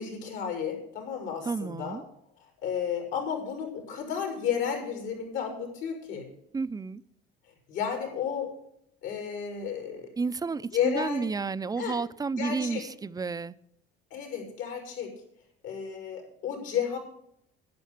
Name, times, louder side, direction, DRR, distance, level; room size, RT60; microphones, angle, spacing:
voice 1, 0.0-2.0 2.6-6.3 7.7-8.5 9.0-10.1 10.7-11.3 11.8-12.0 12.4-12.8 14.1-15.1 15.6-17.0, left 8 dB, 75° left, 5.6 m, -32 dB
voice 2, 1.4-2.0 6.5-7.0 10.2-13.5, right 4 dB, 20° right, 0.5 m, -31 dB
11.5 x 9.8 x 6.7 m
cardioid pair, 115°, 20 cm